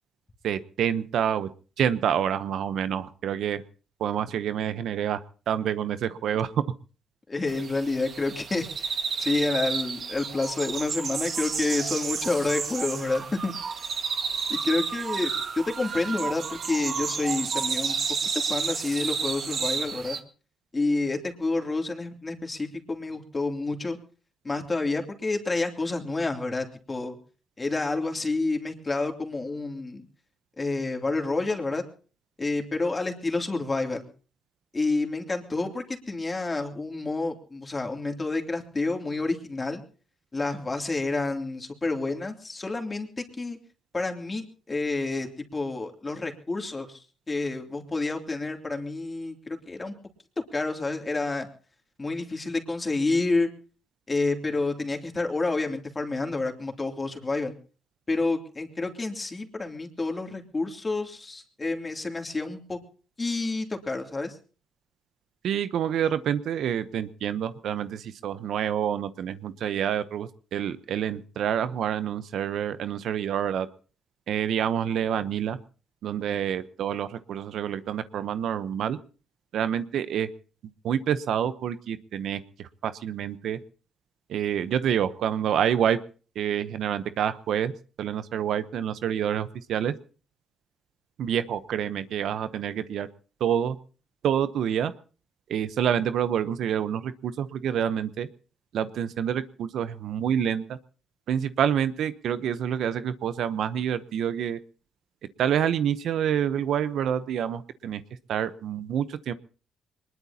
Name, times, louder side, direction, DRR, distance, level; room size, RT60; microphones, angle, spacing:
voice 1, 0.4-1.5 1.8-3.6 4.0-5.2 5.5-6.5 65.4-73.7 74.3-75.6 76.0-79.0 79.5-80.3 80.8-82.4 82.8-83.6 84.3-86.0 86.4-87.7 88.0-89.9 91.2-93.1 93.4-93.8 94.2-94.9 95.5-98.3 98.7-100.8 101.3-104.6 105.4-108.0 108.3-109.3, right 9 dB, 70° right, 13 dB, 0.8 m, -27 dB
voice 2, 7.3-13.8 14.5-15.3 15.6-18.0 18.5-20.2 20.7-24.0 24.4-27.2 27.6-30.0 30.6-31.8 32.4-34.1 34.7-39.8 40.3-43.6 43.9-49.9 50.5-51.5 52.0-53.5 54.1-57.5 58.1-62.8 63.2-64.4, left 3 dB, 25° left, 3 dB, 2.8 m, -29 dB
sound 1, 7.5-20.2, right 6 dB, 50° right, 1.7 m, -31 dB
22.5 x 20.5 x 2.9 m, 0.38 s
cardioid pair, 90°, 0 cm